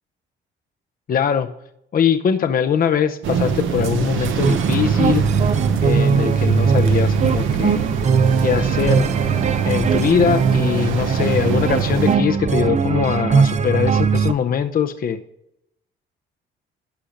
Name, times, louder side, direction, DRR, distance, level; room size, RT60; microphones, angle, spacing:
voice 1, 1.1-1.5 1.9-5.2 5.8-7.8 8.4-9.0 9.6-15.2, left 7 dB, 45° left, 8 dB, 0.7 m, -21 dB
sound 1, 3.2-12.2, right 7 dB, 80° right, 0.9 m, -23 dB
sound 2, 4.2-14.3, right 6 dB, 35° right, 0.5 m, -20 dB
11.5 x 5.1 x 5.1 m, 0.80 s
cardioid pair, 90°, 20 cm